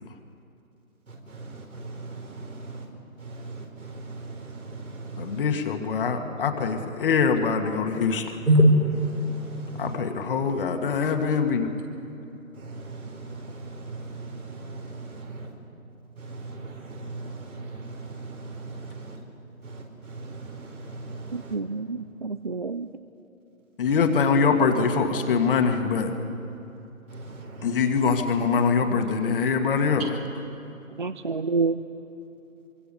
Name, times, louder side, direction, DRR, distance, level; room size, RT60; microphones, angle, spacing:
voice 1, 1.1-2.9 3.2-5.4 8.5-10.0 12.5-15.5 16.2-19.2 19.6-21.6 23.8-24.1 27.1-27.9, equal, 75° right, 1 dB, 5.1 m, -30 dB
voice 2, 5.2-8.3 9.8-11.7 23.8-26.1 27.6-30.0, left 5 dB, 40° left, 6 dB, 1.7 m, -23 dB
voice 3, 21.3-22.9 31.0-31.8, right 4 dB, 40° right, 12 dB, 0.4 m, -28 dB
24.5 x 24.0 x 5.3 m, 3.0 s
figure-of-eight pair, 140°, 42 cm